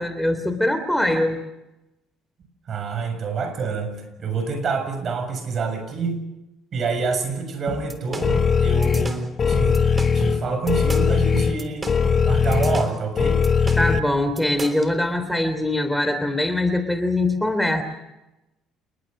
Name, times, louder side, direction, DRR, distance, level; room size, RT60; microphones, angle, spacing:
voice 1, 0.0-1.4 13.8-17.8, left 1 dB, 5° left, 9 dB, 3.2 m, -22 dB
voice 2, 2.7-6.2 6.7-11.9 12.2-13.4, right 4 dB, 50° right, 8 dB, 6.8 m, -27 dB
sound 1, 7.7-14.9, right 2 dB, 25° right, 3.5 m, -34 dB
sound 2, 8.2-14.0, left 5 dB, 40° left, 1.0 m, -20 dB
29.0 x 20.0 x 6.6 m, 0.95 s
supercardioid pair, 75°, 0 cm